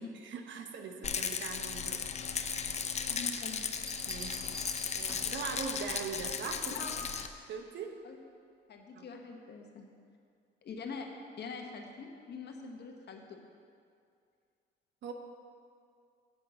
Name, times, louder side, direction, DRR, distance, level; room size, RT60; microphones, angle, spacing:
voice 1, 0.0-2.0 4.1-4.5 4.9-6.7 7.5-7.9 8.9-9.1 15.0-15.1, right 5 dB, 70° right, 5 dB, 0.9 m, -41 dB
Rattle, 1.0-7.3, left 6 dB, 35° left, 0.5 m, -36 dB
voice 2, 3.1-3.6 6.7-7.1 8.0-8.2 8.7-9.9 10.6-11.1 11.4-13.4, left 5 dB, 55° left, 3 dB, 1.2 m, -44 dB
sound 1, 3.7-5.5 7.1-7.4, equal, 15° right, 1.1 m, -47 dB
7.6 x 5.4 x 7.5 m, 2.3 s
cardioid pair, 90°, 20 cm